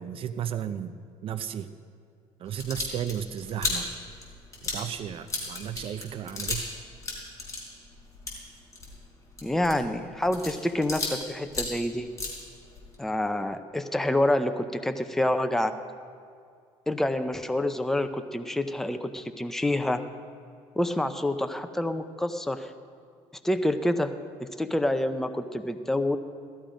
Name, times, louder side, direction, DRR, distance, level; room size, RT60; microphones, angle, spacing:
voice 1, 0.0-1.7 2.4-3.9 4.6-6.7, right 9 dB, 50° right, 11 dB, 0.6 m, -34 dB
sound 1, 2.5-6.7 7.0-11.2 11.5-12.9, left 3 dB, 25° left, 4.5 m, -35 dB
voice 2, 9.4-12.1 13.0-15.8 16.9-20.0 20.7-22.7 23.4-24.1 24.4-26.2, left 1 dB, 5° left, 8 dB, 0.7 m, -27 dB
16.5 x 13.5 x 5.1 m, 2.3 s
cardioid pair, 115°, 12 cm